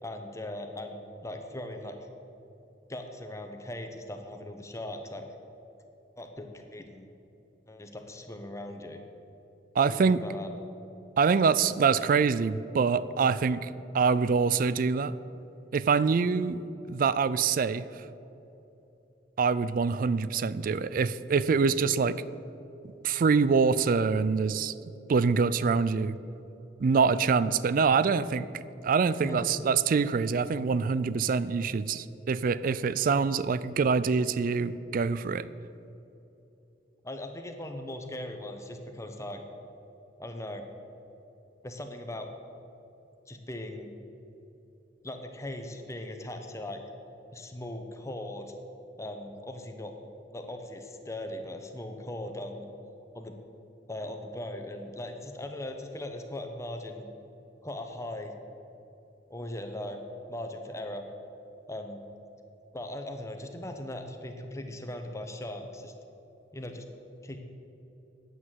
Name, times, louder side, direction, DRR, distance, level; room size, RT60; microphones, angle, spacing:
voice 1, 0.0-2.0 2.9-5.2 6.2-7.1 7.7-9.0 9.9-10.6 29.2-29.5 37.0-39.4 40.2-40.6 41.6-42.3 43.3-43.9 45.0-46.8 47.3-48.5 49.0-49.9 50.3-52.7 53.1-53.4 53.9-57.1 57.6-58.3 59.3-60.0 60.3-61.0 61.7-62.0 62.7-65.9 66.5-66.8 67.2-67.4, left 1 dB, 15° left, 5 dB, 0.9 m, -39 dB
voice 2, 9.8-10.2 11.2-13.7 13.9-15.1 15.7-17.9 19.4-22.2 23.0-24.7 25.1-26.2 26.8-35.5, right 5 dB, 50° right, 16 dB, 0.3 m, -25 dB
9.9 x 8.2 x 7.4 m, 2.9 s
head